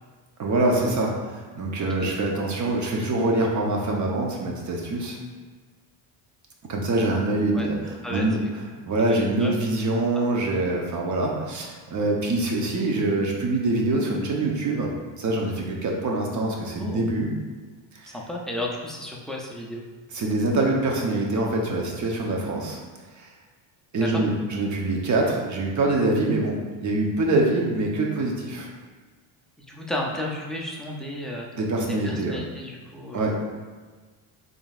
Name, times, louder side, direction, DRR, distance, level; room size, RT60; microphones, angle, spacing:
voice 1, 0.4-5.2 6.7-7.8 8.1-8.4 8.9-17.3 17.9-18.1 20.1-22.8 23.2-23.3 23.9-28.7 31.6-32.4 33.1-33.3, right 2 dB, 40° right, -1 dB, 0.8 m, -24 dB
voice 2, 1.8-2.2 7.5-7.7 8.0-8.5 9.0-9.5 16.8-17.1 18.1-19.8 23.9-24.3 29.6-31.5 32.0-33.3, left 1 dB, ahead, -3 dB, 0.4 m, -33 dB
3.8 x 3.7 x 2.4 m, 1.4 s
cardioid pair, 100°, 46 cm